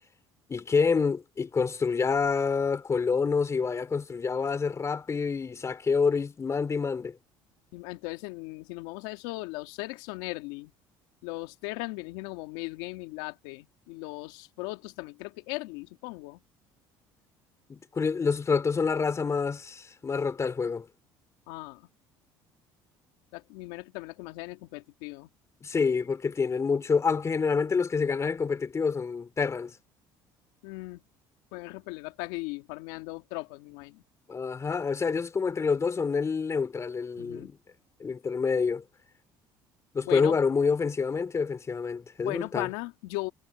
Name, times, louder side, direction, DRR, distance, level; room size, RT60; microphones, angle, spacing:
voice 1, 0.5-7.2 17.7-20.9 25.6-29.7 34.3-37.6 38.0-38.8 39.9-42.7, left 5 dB, 30° left, 3.0 m, -27 dB
voice 2, 7.7-10.7 11.2-16.4 21.5-21.9 23.3-25.3 30.6-31.0 31.5-34.0 37.2-37.5 40.1-40.4 42.2-43.3, left 22 dB, 85° left, 2.4 m, -38 dB
supercardioid pair, 85°, 10 cm